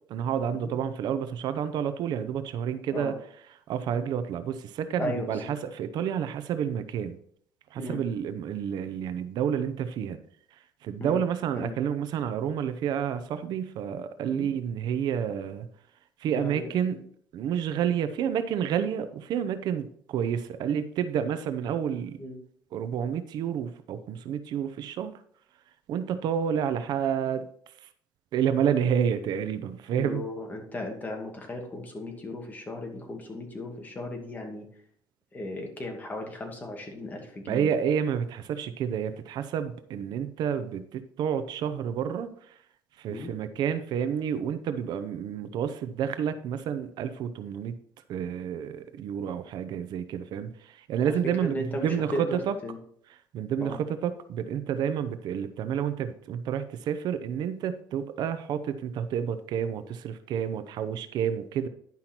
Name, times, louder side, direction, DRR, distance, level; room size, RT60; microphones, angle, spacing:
voice 1, 0.1-3.1 3.7-7.2 7.7-10.2 10.8-15.7 16.2-17.0 17.3-22.2 22.7-25.1 25.9-27.5 27.8-27.9 28.3-30.2 37.5-42.6 43.0-47.7 48.1-52.6 53.3-61.7, right 8 dB, 65° right, 11 dB, 0.7 m, -29 dB
voice 2, 5.0-5.5 7.8-8.0 11.0-11.2 11.5-11.8 14.3-14.5 16.3-16.7 22.2-22.4 29.9-34.7 35.3-37.7 43.1-43.3 51.0-51.1 51.4-52.8 53.6-53.8, left 1 dB, 20° left, 2 dB, 2.2 m, -36 dB
10.5 x 5.7 x 4.4 m, 0.63 s
cardioid pair, 130°, 8 cm